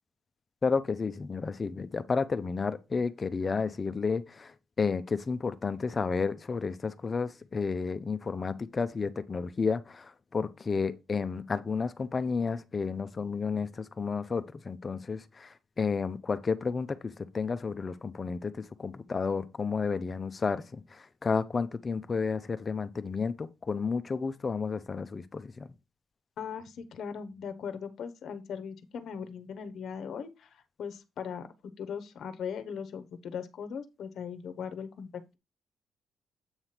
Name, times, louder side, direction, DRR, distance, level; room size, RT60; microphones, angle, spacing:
voice 1, 0.6-25.7, left 5 dB, 35° left, 0.6 m, -31 dB
voice 2, 26.4-31.5 31.8-35.4, left 7 dB, 65° left, 0.8 m, -39 dB
8.0 x 3.1 x 5.8 m
cardioid pair, 90°, 0 cm